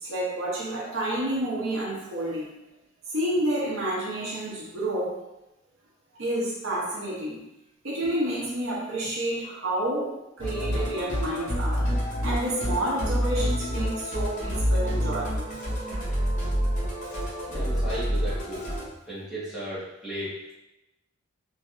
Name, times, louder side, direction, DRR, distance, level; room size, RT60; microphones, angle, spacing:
voice 1, 0.0-2.5 3.1-5.2 6.2-7.4 7.8-11.9 12.2-15.5, right 1 dB, 90° right, -4 dB, 0.8 m, -29 dB
Musical instrument, 10.4-18.9, equal, 40° left, 0.7 m, -28 dB
voice 2, 17.5-18.7 19.1-20.5, equal, ahead, -11 dB, 1.2 m, -35 dB
3.1 x 2.6 x 2.5 m, 0.93 s
head